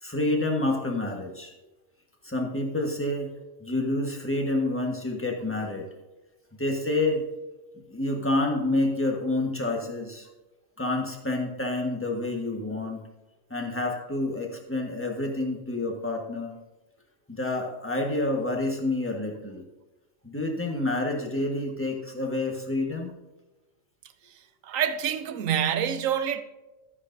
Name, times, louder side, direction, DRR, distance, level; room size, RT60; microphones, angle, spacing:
voice 1, 0.0-1.5 2.2-3.3 3.6-5.9 6.6-7.2 7.7-10.3 10.8-13.0 13.5-16.5 17.3-19.6 20.2-23.1, left 2 dB, 10° left, 1.4 m, -28 dB
voice 2, 24.6-26.4, right 9 dB, 80° right, 1.1 m, -26 dB
13.0 x 9.8 x 2.7 m
omnidirectional pair, 1.4 m